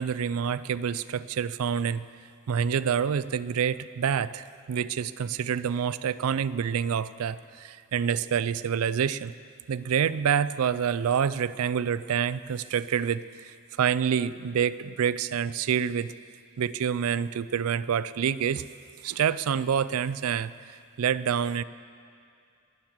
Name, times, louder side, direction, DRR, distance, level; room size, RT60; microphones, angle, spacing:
voice 1, 0.0-2.0 2.5-9.3 9.7-16.1 16.6-18.6 19.0-20.5 21.0-21.6, right 7 dB, 80° right, 17 dB, 0.4 m, -27 dB
21.0 x 7.3 x 7.3 m, 2.3 s
head